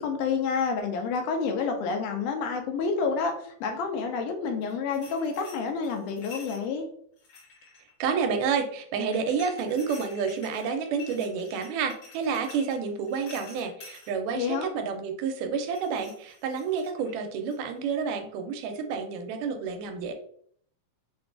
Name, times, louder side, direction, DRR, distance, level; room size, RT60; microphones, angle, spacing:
voice 1, 0.0-3.3 3.6-6.9 14.3-14.7, left 5 dB, 85° left, 4 dB, 2.1 m, -29 dB
sound 1, 4.6-6.7 7.2-7.9 9.1-14.1 15.7-17.1 17.5-17.8, left 4 dB, 60° left, 2.2 m, -49 dB
voice 2, 8.0-20.1, right 6 dB, 85° right, 5 dB, 2.1 m, -29 dB
5.6 x 2.2 x 2.4 m, 0.62 s
omnidirectional pair, 3.7 m